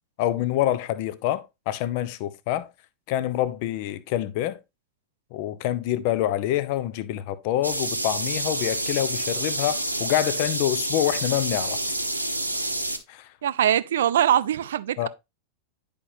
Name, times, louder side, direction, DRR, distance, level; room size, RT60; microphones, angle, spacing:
voice 1, 0.2-2.7 3.1-4.6 5.3-11.8 13.1-13.3 15.0-15.1, left 13 dB, 45° left, 0.6 m, -26 dB
sound 1, 7.6-13.0, right 1 dB, 85° right, 0.8 m, -28 dB
voice 2, 13.4-15.1, right 10 dB, 60° right, 0.4 m, -22 dB
9.9 x 5.1 x 2.7 m
figure-of-eight pair, 90°, 0 cm